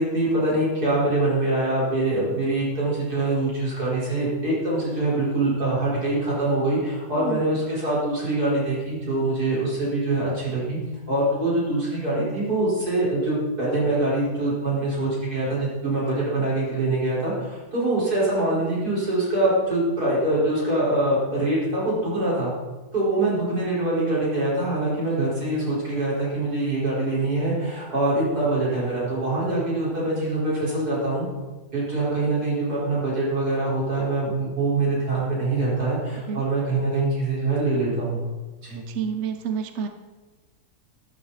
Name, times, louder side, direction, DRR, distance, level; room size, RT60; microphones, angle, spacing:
voice 1, 0.0-10.8 11.1-22.5 22.9-31.3 31.7-38.2 38.6-38.8, right 2 dB, 80° right, -7 dB, 5.4 m, -24 dB
voice 2, 38.8-39.9, right 7 dB, 55° right, 7 dB, 1.0 m, -29 dB
12.5 x 12.5 x 4.2 m, 1.2 s
omnidirectional pair, 1.6 m